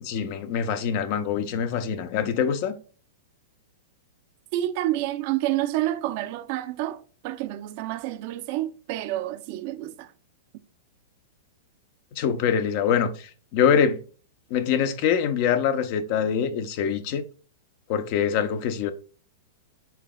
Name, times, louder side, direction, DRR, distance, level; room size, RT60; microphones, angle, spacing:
voice 1, 0.0-2.8 12.2-14.0 14.5-17.2 17.9-18.9, left 7 dB, 50° left, 0.6 m, -24 dB
voice 2, 4.5-10.1, right 14 dB, 50° right, 0.4 m, -29 dB
5.7 x 3.9 x 2.2 m
hypercardioid pair, 120°, 0 cm